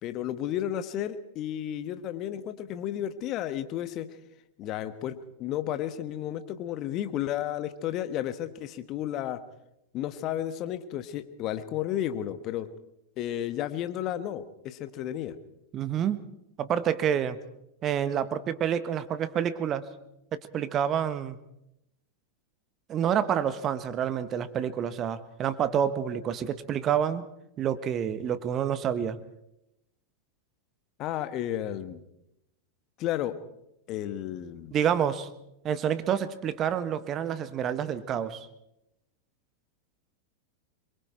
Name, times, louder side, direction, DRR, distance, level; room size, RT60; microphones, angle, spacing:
voice 1, 0.0-4.1 4.6-9.4 9.9-12.7 13.2-15.4 31.0-32.0 33.0-33.3 33.9-34.7, left 11 dB, 35° left, 11 dB, 1.5 m, -32 dB
voice 2, 15.7-16.2 16.6-17.4 17.8-19.8 20.3-21.4 22.9-27.2 27.6-29.2 34.7-35.3 35.6-38.5, right 9 dB, 30° right, 13 dB, 1.4 m, -28 dB
25.5 x 23.0 x 4.5 m, 0.85 s
figure-of-eight pair, 90°, 0 cm